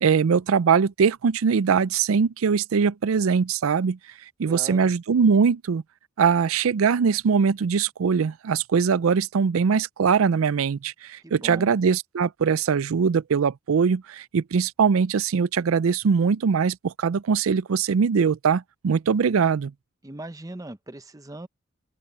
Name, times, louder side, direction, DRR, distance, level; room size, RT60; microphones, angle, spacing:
voice 1, 0.0-4.0 4.4-5.8 6.2-19.7, right 6 dB, 80° right, 0.4 m, -22 dB
voice 2, 4.4-4.9 11.2-11.7 20.0-21.5, right 1 dB, 15° right, 0.7 m, -39 dB
open air
head